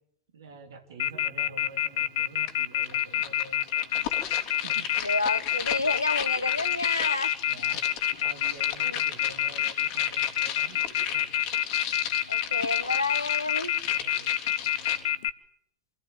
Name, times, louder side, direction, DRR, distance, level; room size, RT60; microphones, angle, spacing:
voice 1, 0.3-3.9 4.6-4.9 7.5-7.9 8.2-11.2 13.8-14.4, right 4 dB, 70° right, 3.0 m, -47 dB
Telephone, 1.0-15.3, left 12 dB, 65° left, 1.2 m, -26 dB
sound 1, 2.5-2.6 2.8-15.0, left 8 dB, 50° left, 3.6 m, -36 dB
voice 2, 5.0-7.3 8.8-9.0 12.3-13.7, left 3 dB, 85° left, 1.3 m, -29 dB
28.0 x 16.0 x 9.5 m
figure-of-eight pair, 80°, 2 cm